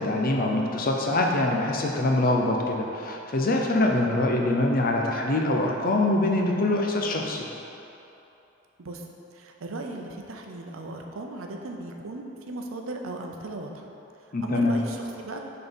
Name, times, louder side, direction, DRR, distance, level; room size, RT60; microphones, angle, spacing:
voice 1, 0.0-7.5 14.3-14.8, left 2 dB, 45° left, 1 dB, 0.6 m, -24 dB
voice 2, 9.3-13.9 14.4-15.4, right 2 dB, 80° right, 2 dB, 0.6 m, -37 dB
6.0 x 3.8 x 5.3 m, 2.9 s
head